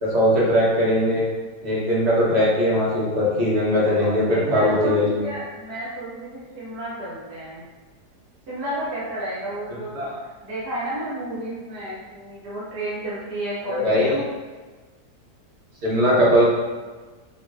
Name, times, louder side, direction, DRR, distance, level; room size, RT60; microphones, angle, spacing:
voice 1, 0.0-1.2 1.6-5.2 9.9-10.2 13.7-14.2 15.8-16.5, equal, 45° right, -6 dB, 1.1 m, -20 dB
voice 2, 3.8-7.7 8.5-14.2, right 1 dB, 80° right, -9 dB, 1.8 m, -32 dB
4.5 x 2.7 x 2.3 m, 1.3 s
omnidirectional pair, 1.7 m